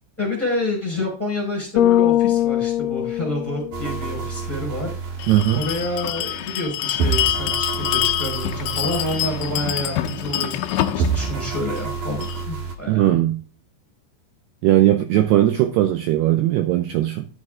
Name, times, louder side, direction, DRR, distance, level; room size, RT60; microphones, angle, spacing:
voice 1, 0.2-4.9 5.5-10.6 10.9-13.2, left 1 dB, 5° left, -1 dB, 4.0 m, -28 dB
Bass guitar, 1.8-4.1, left 13 dB, 65° left, 2.8 m, -20 dB
sound 1, 3.7-6.7 7.0-10.7 11.0-12.7, right 5 dB, 60° right, 2.3 m, -29 dB
Bell, 5.2-12.4, left 12 dB, 85° left, 3.1 m, -26 dB
voice 2, 5.3-5.6 12.9-13.4 14.6-17.3, right 13 dB, 85° right, 7 dB, 2.3 m, -18 dB
12.0 x 6.5 x 3.7 m, 0.40 s
omnidirectional pair, 5.7 m